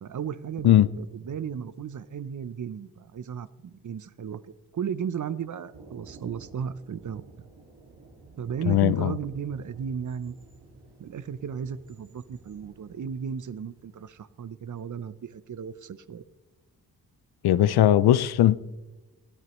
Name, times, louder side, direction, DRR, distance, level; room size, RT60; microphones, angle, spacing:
voice 1, 0.0-4.4 4.7-7.2 8.4-10.3 11.0-16.2, right 7 dB, 50° right, 0.7 m, -35 dB
Thunder, 5.7-14.7, right 3 dB, 85° right, 2.4 m, -52 dB
voice 2, 8.7-9.1 17.4-18.6, left 12 dB, 75° left, 0.6 m, -19 dB
20.0 x 13.0 x 3.1 m
cardioid pair, 50°, 38 cm